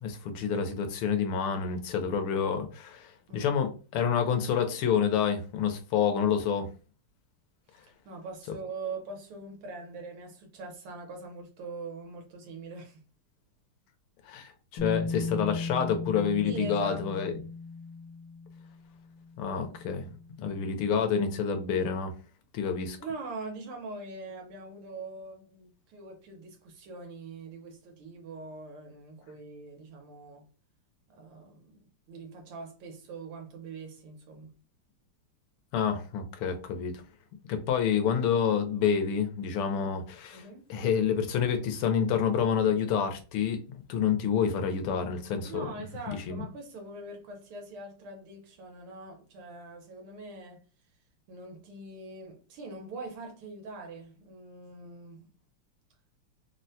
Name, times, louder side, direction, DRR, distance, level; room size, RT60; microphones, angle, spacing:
voice 1, 0.0-6.7 14.2-17.3 19.4-20.1 20.4-22.1 22.5-23.0 35.7-37.0 37.5-45.7 46.1-46.4, left 7 dB, 85° left, 1.6 m, -28 dB
voice 2, 8.1-13.0 16.4-17.3 23.0-30.5 31.1-34.5 40.3-40.6 45.4-50.6 51.3-55.3, right 3 dB, 85° right, 1.8 m, -43 dB
Bass guitar, 14.8-20.8, left 4 dB, 60° left, 1.0 m, -37 dB
4.1 x 2.1 x 2.6 m
omnidirectional pair, 2.4 m